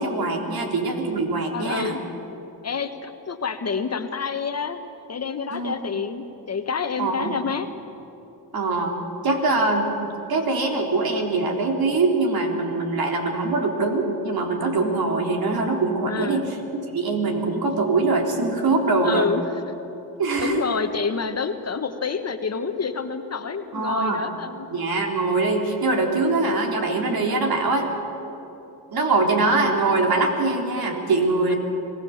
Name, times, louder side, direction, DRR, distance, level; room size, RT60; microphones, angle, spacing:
voice 1, 0.0-2.0 5.5-5.7 7.0-7.4 8.5-8.9 9.2-9.9 10.3-19.3 20.2-20.6 23.7-24.2 24.7-27.9 28.9-31.6, right 3 dB, 60° right, 2 dB, 3.8 m, -23 dB
voice 2, 1.5-2.0 2.6-4.8 5.1-7.7 16.0-16.4 19.0-19.4 20.4-24.7, left 5 dB, 40° left, 8 dB, 1.5 m, -28 dB
25.5 x 17.5 x 7.4 m, 2.9 s
cardioid pair, 75°, 41 cm